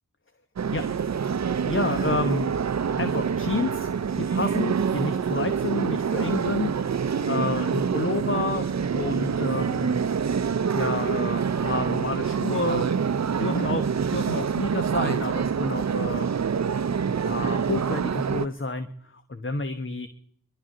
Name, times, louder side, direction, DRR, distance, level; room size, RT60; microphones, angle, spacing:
sound 1, 0.6-18.5, right 6 dB, 50° right, 0.6 m, -26 dB
voice 1, 1.6-2.5 2.9-3.9 4.2-6.7 7.3-10.0 10.7-12.9 13.4-16.3 17.0-20.1, left 3 dB, 35° left, 9 dB, 1.2 m, -30 dB
23.5 x 12.5 x 3.9 m, 0.65 s
cardioid pair, 50°, 35 cm